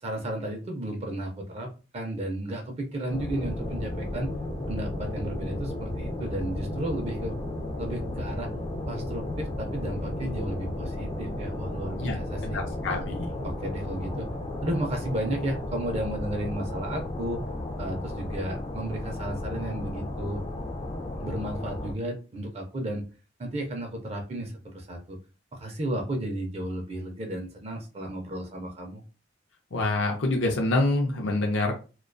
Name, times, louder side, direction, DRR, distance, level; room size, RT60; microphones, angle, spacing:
voice 1, 0.0-1.7 1.9-4.3 4.7-7.4 7.8-8.5 8.9-12.6 13.4-14.3 14.6-17.4 17.8-20.4 21.2-23.0 23.4-25.2 25.5-29.0, right 1 dB, 35° right, 3 dB, 0.4 m, -33 dB
sound 1, 3.1-21.9, left 1 dB, 30° left, 0.3 m, -34 dB
sound 2, 3.4-17.1, equal, 80° right, 0.7 m, -41 dB
voice 2, 12.4-13.3 29.7-31.8, left 2 dB, 75° left, 1 dB, 0.5 m, -26 dB
2.2 x 2.2 x 2.4 m, 0.33 s
head